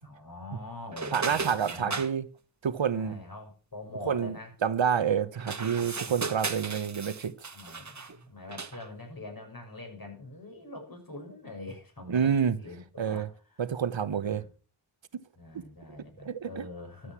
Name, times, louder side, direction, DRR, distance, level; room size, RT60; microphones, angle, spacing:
voice 1, 0.0-2.0 2.9-4.5 5.6-6.3 7.5-12.3 12.6-13.6 14.1-14.4 15.4-17.1, left 2 dB, 45° left, 6.4 m, -44 dB
sound 1, 0.9-2.1 5.3-8.2 8.5-8.9, right 4 dB, 35° right, 1.3 m, -36 dB
voice 2, 1.1-2.2 2.6-3.2 4.1-4.4 4.6-7.5 12.1-12.6 13.0-13.3 13.6-14.4 16.2-16.7, right 7 dB, 65° right, 1.1 m, -28 dB
13.0 x 8.1 x 6.0 m
cardioid pair, 55°, 49 cm